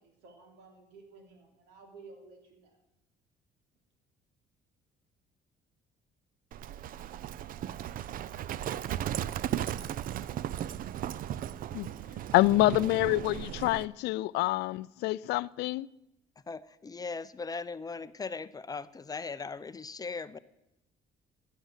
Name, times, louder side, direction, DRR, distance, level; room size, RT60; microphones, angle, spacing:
voice 1, 0.0-2.8, right 3 dB, 90° right, 3.4 m, -54 dB
Livestock farm animals working animals, 6.5-13.9, right 11 dB, 55° right, 0.5 m, -36 dB
voice 2, 12.3-15.9, left 18 dB, 80° left, 0.4 m, -27 dB
voice 3, 16.5-20.4, left 4 dB, 20° left, 0.5 m, -39 dB
11.5 x 10.0 x 8.2 m
cardioid pair, 110°, 17 cm